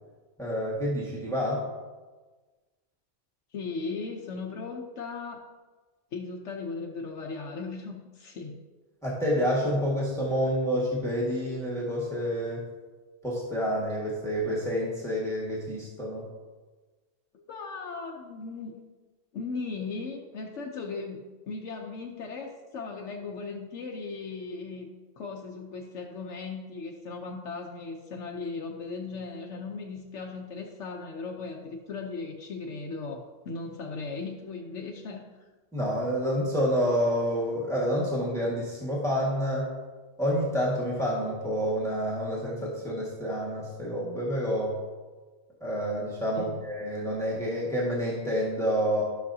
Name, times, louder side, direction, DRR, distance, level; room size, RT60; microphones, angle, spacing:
voice 1, 0.4-1.6 9.0-12.7 13.2-16.3 35.7-39.7 40.2-44.8 45.6-49.0, equal, ahead, -5 dB, 1.7 m, -28 dB
voice 2, 3.5-5.5 6.1-8.6 17.3-18.8 19.3-24.9 25.2-35.2 46.4-46.6, left 4 dB, 80° left, 0 dB, 1.1 m, -37 dB
13.5 x 6.3 x 2.8 m, 1.3 s
omnidirectional pair, 1.2 m